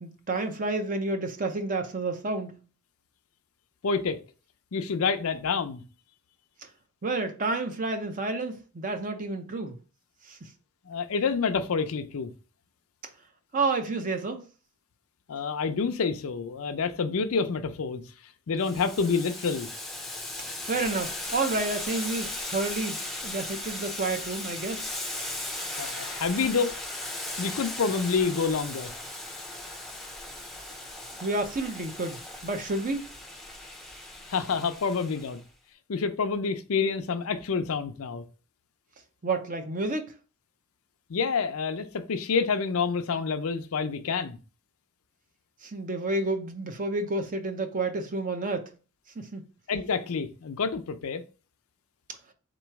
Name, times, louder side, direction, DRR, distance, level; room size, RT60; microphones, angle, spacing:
voice 1, 0.0-2.6 7.0-9.8 10.3-10.4 13.5-14.4 20.6-23.0 23.2-24.9 31.2-33.1 39.2-40.1 45.6-48.7 49.2-49.4, right 3 dB, 40° right, 0.6 m, -30 dB
voice 2, 3.8-4.2 4.7-5.8 10.9-12.3 15.3-18.0 18.5-19.7 25.8-26.8 27.4-28.9 34.3-35.4 35.9-38.2 41.1-44.4 49.7-51.2, left 5 dB, 75° left, 0.5 m, -28 dB
Boiling, 18.6-35.4, left 1 dB, ahead, 0.6 m, -37 dB
3.9 x 3.0 x 4.5 m
head